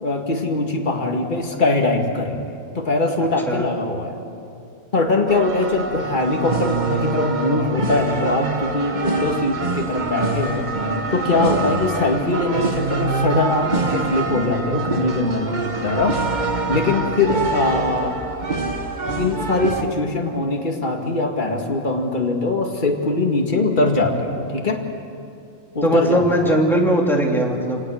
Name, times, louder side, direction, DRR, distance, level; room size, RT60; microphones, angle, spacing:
voice 1, 0.0-4.2 4.9-10.7 11.1-16.2 16.7-18.1 19.2-24.8 25.7-26.6, left 2 dB, 30° left, 2 dB, 2.1 m, -22 dB
voice 2, 3.2-3.7 25.8-27.8, equal, ahead, -1 dB, 2.6 m, -20 dB
sound 1, 5.3-19.8, right 3 dB, 30° right, 1.3 m, -25 dB
28.0 x 18.0 x 6.4 m, 2.6 s
omnidirectional pair, 1.7 m